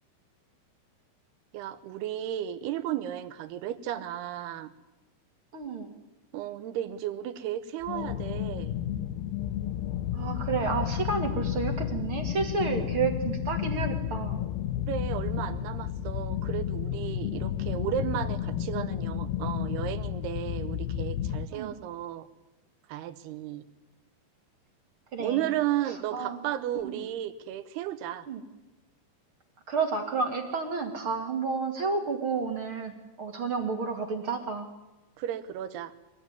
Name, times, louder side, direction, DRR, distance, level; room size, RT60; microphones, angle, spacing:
voice 1, 1.5-4.7 6.3-8.7 14.9-22.3 22.9-23.6 25.2-28.3 35.2-35.9, right 12 dB, 70° right, 11 dB, 2.9 m, -34 dB
voice 2, 5.5-5.9 10.1-14.4 21.5-21.7 25.1-25.5 25.8-26.4 26.8-27.0 28.3-28.4 29.7-34.7, right 4 dB, 45° right, 4 dB, 1.9 m, -31 dB
sound 1, 7.8-21.5, left 10 dB, 75° left, 2.7 m, -32 dB
23.5 x 17.5 x 9.6 m, 1.0 s
omnidirectional pair, 5.3 m